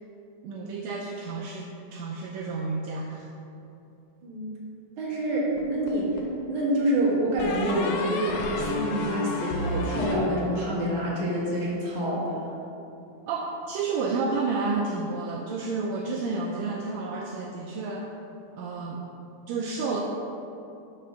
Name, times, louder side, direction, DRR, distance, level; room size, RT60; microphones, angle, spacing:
voice 1, 0.4-3.3 13.3-18.1 18.6-19.0 19.5-20.0, right 4 dB, 80° right, -1 dB, 1.8 m, -30 dB
voice 2, 5.0-6.1 6.5-12.4, equal, 50° right, -6 dB, 2.3 m, -27 dB
sound 1, 5.6-6.4 7.4-10.9, left 2 dB, 85° left, 2.3 m, -32 dB
9.9 x 3.4 x 6.2 m, 2.7 s
omnidirectional pair, 3.4 m